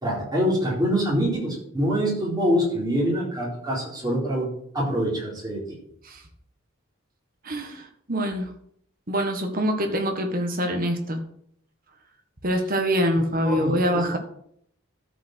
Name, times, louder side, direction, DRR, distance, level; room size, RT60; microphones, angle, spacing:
voice 1, 0.0-5.6 13.4-14.2, equal, 20° right, -4 dB, 4.0 m, -25 dB
voice 2, 7.5-8.5 9.1-11.2 12.4-14.2, equal, 45° right, 4 dB, 1.7 m, -25 dB
12.5 x 5.4 x 6.4 m, 0.68 s
head